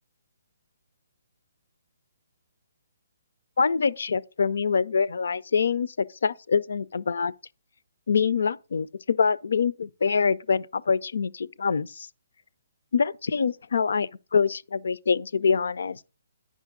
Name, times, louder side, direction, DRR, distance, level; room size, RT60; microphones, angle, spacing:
voice 1, 3.6-7.3 8.1-12.1 12.9-16.0, left 5 dB, 75° left, 0.5 m, -25 dB
9.2 x 5.8 x 3.6 m
hypercardioid pair, 150°, 0 cm